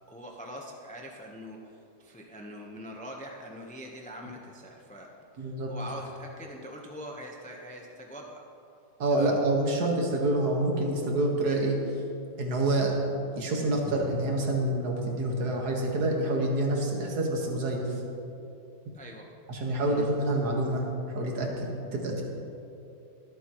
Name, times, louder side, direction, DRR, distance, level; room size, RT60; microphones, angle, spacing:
voice 1, 0.0-1.7 2.0-8.4 9.1-9.4 18.9-19.3 19.8-20.1, equal, 10° left, 0 dB, 0.4 m, -43 dB
voice 2, 5.4-5.7 9.0-11.8 12.4-12.9 13.4-18.0 19.5-22.2, right 2 dB, 60° right, 0 dB, 2.0 m, -27 dB
23.0 x 8.2 x 3.1 m, 2.7 s
omnidirectional pair, 1.9 m